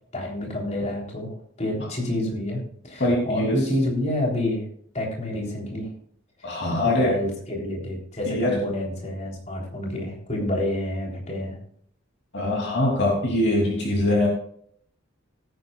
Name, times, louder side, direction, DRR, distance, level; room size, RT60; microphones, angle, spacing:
voice 1, 0.1-4.6 4.9-5.9 6.8-11.6, left 1 dB, 35° left, -1 dB, 3.6 m, -28 dB
voice 2, 3.0-3.7 6.4-7.2 8.3-8.6 12.3-14.3, left 1 dB, 60° left, -1 dB, 2.9 m, -23 dB
18.0 x 9.5 x 2.4 m, 0.62 s
head